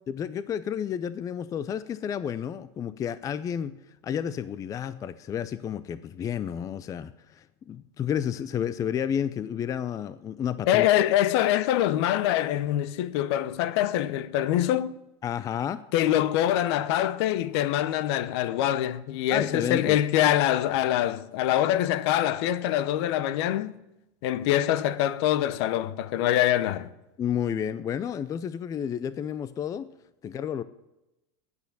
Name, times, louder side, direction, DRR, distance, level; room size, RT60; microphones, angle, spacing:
voice 1, 0.1-3.8 4.0-10.9 15.2-15.8 19.3-20.0 27.2-29.9 30.2-30.6, left 8 dB, 20° left, 0.4 m, -31 dB
voice 2, 10.7-14.9 15.9-23.7 24.2-26.9, left 12 dB, 65° left, 0.7 m, -24 dB
9.4 x 8.1 x 6.7 m
supercardioid pair, 125°, 15 cm